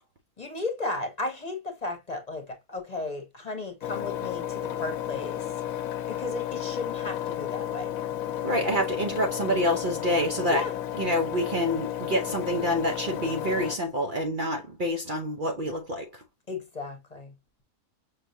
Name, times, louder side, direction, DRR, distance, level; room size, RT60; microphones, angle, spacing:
voice 1, 0.4-5.5 6.1-7.9 10.5-10.7 16.5-17.3, left 2 dB, 30° left, 1.1 m, -34 dB
Engine, 3.8-13.8, left 11 dB, 85° left, 1.0 m, -33 dB
voice 2, 8.4-10.6 11.0-16.2, equal, 45° right, 0.7 m, -27 dB
5.7 x 3.1 x 2.6 m
omnidirectional pair, 1.4 m